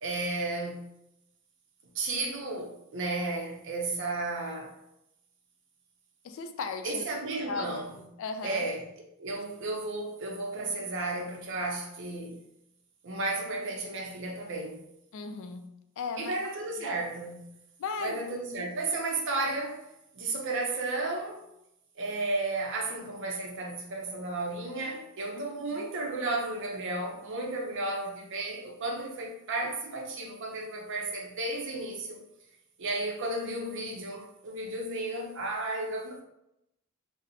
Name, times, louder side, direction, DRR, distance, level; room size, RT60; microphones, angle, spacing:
voice 1, 0.0-0.9 1.9-4.7 6.8-7.9 8.4-8.9 9.2-12.4 13.0-14.8 16.2-17.5 18.0-19.8 20.1-21.4 22.0-32.2 32.8-36.2, right 2 dB, 60° right, 0 dB, 0.5 m, -33 dB
voice 2, 6.2-7.0 7.5-7.7 8.2-8.6 15.1-16.4 17.8-18.7 25.5-25.9 27.8-28.0, left 4 dB, 60° left, 7 dB, 0.3 m, -37 dB
4.0 x 2.0 x 2.6 m, 0.83 s
head